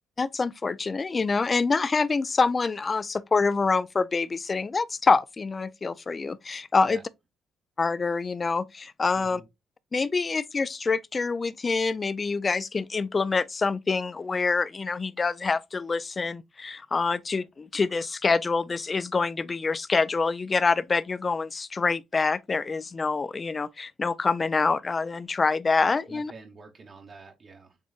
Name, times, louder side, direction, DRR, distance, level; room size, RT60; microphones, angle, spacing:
voice 1, 0.2-7.0 7.8-9.4 9.9-26.3, left 4 dB, 30° left, 0.3 m, -26 dB
voice 2, 9.1-9.5 26.1-27.8, right 4 dB, 45° right, 0.9 m, -48 dB
7.1 x 3.1 x 2.3 m
cardioid pair, 90°, 0 cm